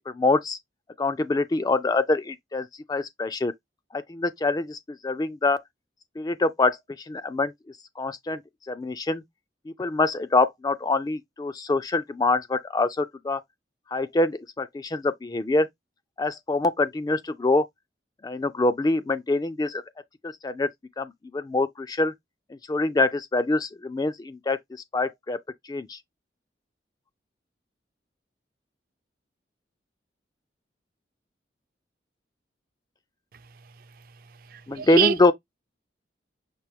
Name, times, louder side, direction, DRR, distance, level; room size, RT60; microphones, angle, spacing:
voice 1, 0.1-0.6 1.0-3.5 3.9-5.6 6.2-6.8 7.1-7.5 8.0-8.4 8.7-9.2 9.7-13.4 13.9-15.7 16.2-17.6 18.2-19.8 20.2-20.7 21.0-22.1 22.7-24.6 24.9-25.4 25.7-26.0 34.7-35.3, left 2 dB, 20° left, 0.3 m, -25 dB
voice 2, 34.7-35.3, right 8 dB, 50° right, 0.5 m, -24 dB
5.9 x 2.5 x 3.3 m
head